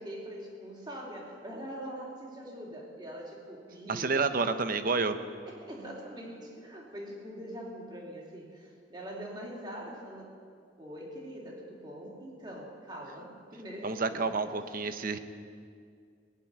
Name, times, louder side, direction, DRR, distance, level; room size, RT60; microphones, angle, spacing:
voice 1, 0.0-4.4 5.5-10.3 10.8-14.4, equal, 25° right, -3 dB, 3.0 m, -43 dB
voice 2, 3.9-5.2 13.8-15.2, right 4 dB, 50° right, 10 dB, 0.8 m, -29 dB
20.0 x 7.3 x 9.4 m, 2.3 s
head